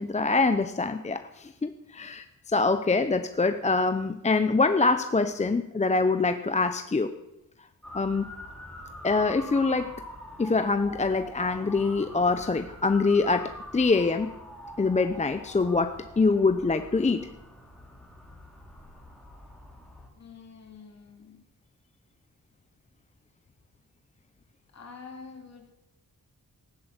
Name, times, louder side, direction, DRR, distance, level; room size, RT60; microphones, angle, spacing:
voice 1, 0.0-7.1 7.9-8.3 9.0-9.9 10.4-14.3 14.8-17.3, left 3 dB, 20° left, 9 dB, 0.7 m, -25 dB
Motor vehicle (road) / Siren, 7.8-20.1, left 1 dB, ahead, 3.9 m, -44 dB
voice 2, 20.2-21.5 24.7-25.7, left 5 dB, 50° left, 3 dB, 3.2 m, -47 dB
15.5 x 11.5 x 8.1 m, 0.91 s
wide cardioid pair, 130°, 34 cm